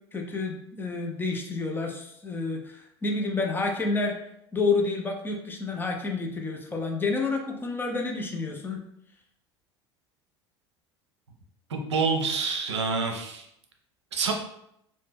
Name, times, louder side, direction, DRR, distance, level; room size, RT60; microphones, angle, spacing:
voice 1, 0.1-4.2 4.5-8.8, left 3 dB, 15° left, 1 dB, 0.6 m, -29 dB
voice 2, 11.7-13.5 14.1-14.3, right 4 dB, 75° right, 2 dB, 0.5 m, -27 dB
2.9 x 2.1 x 3.2 m, 0.75 s
figure-of-eight pair, 70°, 15 cm